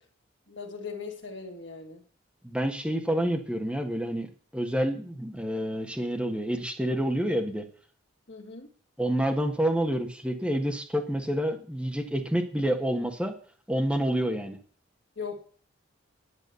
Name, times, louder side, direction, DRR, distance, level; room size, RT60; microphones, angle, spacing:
voice 1, 0.5-2.0 8.3-8.7 15.2-15.4, left 5 dB, 65° left, 3 dB, 2.3 m, -39 dB
voice 2, 2.4-7.6 9.0-13.3 13.7-14.6, equal, 5° right, 3 dB, 1.6 m, -28 dB
9.9 x 9.7 x 6.8 m, 0.43 s
head